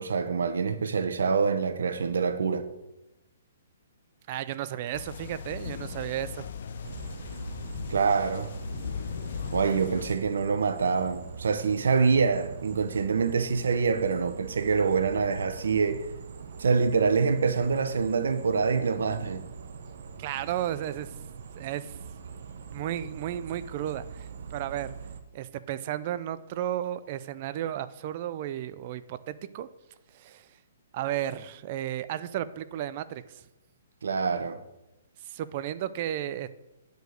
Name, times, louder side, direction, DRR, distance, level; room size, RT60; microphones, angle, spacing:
voice 1, 0.0-2.7 7.9-8.5 9.5-16.0 16.6-19.4 34.0-34.6, right 5 dB, 85° right, 0.9 m, -25 dB
voice 2, 4.3-6.4 20.2-21.1 21.6-22.0 22.7-24.9 25.3-29.7 30.1-30.5 30.9-33.4 35.2-36.5, right 11 dB, 35° right, 0.4 m, -33 dB
sound 1, 4.9-10.2, left 6 dB, 50° left, 0.7 m, -38 dB
sound 2, 6.8-25.2, right 6 dB, 55° right, 0.8 m, -43 dB
9.1 x 4.8 x 6.5 m
hypercardioid pair, 170°, 0 cm